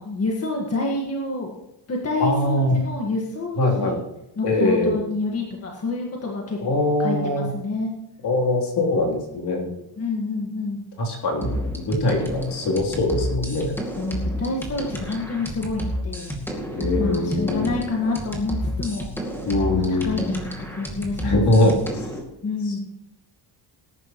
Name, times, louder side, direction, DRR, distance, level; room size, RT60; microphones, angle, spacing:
voice 1, 0.0-1.5 1.9-4.0 4.4-7.9 10.0-10.8 14.0-16.4 17.0-19.0 19.8-21.8 22.4-22.8, left 3 dB, 30° left, -1 dB, 1.8 m, -28 dB
voice 2, 2.2-2.8 3.5-4.0 4.4-5.0 6.6-7.5 8.2-9.7 11.0-13.7 14.9-15.0 16.7-17.7 19.4-20.3 21.2-22.0 22.6-22.8, left 1 dB, 55° left, 0 dB, 3.4 m, -22 dB
sound 1, 11.4-22.2, equal, 5° left, 2.3 m, -30 dB
19.5 x 11.0 x 3.1 m, 0.88 s
cardioid pair, 160°, 46 cm